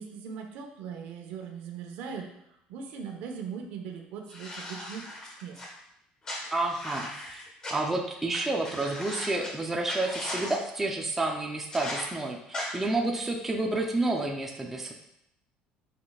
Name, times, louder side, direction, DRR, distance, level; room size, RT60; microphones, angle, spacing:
voice 1, 0.0-2.3 2.7-5.1 5.4-5.6, right 6 dB, 70° right, 3 dB, 1.1 m, -39 dB
sound 1, 4.3-5.7 6.2-7.7 8.3-8.4 8.6-9.5 9.9-10.6 11.7-12.0 12.5-12.6, left 1 dB, 20° left, 1.4 m, -38 dB
voice 2, 6.5-7.4 7.7-14.9, right 2 dB, 10° right, 0 dB, 0.6 m, -30 dB
9.8 x 5.9 x 2.4 m, 0.81 s
cardioid pair, 175°, 3 cm